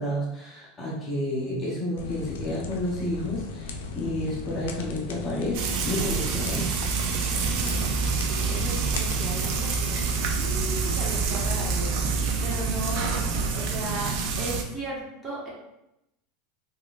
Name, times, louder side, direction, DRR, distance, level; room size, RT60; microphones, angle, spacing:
voice 1, 0.0-6.8, left 1 dB, 20° left, -6 dB, 0.8 m, -30 dB
sound 1, 2.0-13.5, left 2 dB, 90° left, 0.4 m, -37 dB
Frying (food), 5.5-14.6, right 5 dB, 60° right, 0.5 m, -27 dB
voice 2, 7.5-7.9 8.2-13.1 13.5-15.5, right 1 dB, 25° right, -6 dB, 1.3 m, -36 dB
3.6 x 2.4 x 2.4 m, 0.86 s
supercardioid pair, 130°, 0 cm